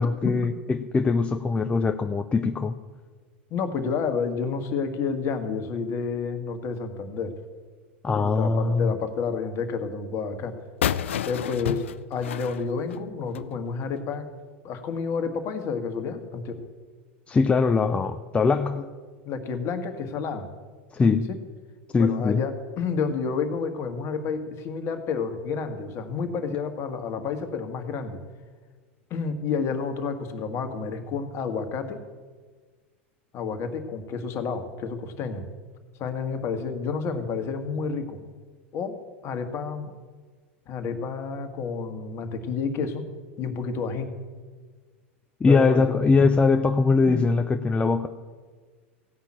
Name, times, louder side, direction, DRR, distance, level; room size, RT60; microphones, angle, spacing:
voice 1, 0.0-2.8 8.0-8.9 17.3-18.8 20.9-21.3 21.9-22.4 45.4-48.1, left 4 dB, 15° left, 7 dB, 0.5 m, -22 dB
voice 2, 3.5-7.3 8.1-10.5 11.2-14.3 14.6-16.7 18.7-18.9 19.2-20.5 21.3-21.4 22.0-28.2 29.1-32.0 33.3-35.4 36.0-38.2 38.7-39.0 39.2-39.9 40.7-43.1 43.4-44.1 45.5-46.1 47.1-47.3, left 5 dB, 45° left, 8 dB, 1.6 m, -30 dB
sound 1, 10.8-13.5, left 10 dB, 85° left, 0.5 m, -30 dB
16.0 x 5.8 x 8.7 m, 1.5 s
hypercardioid pair, 100°, 7 cm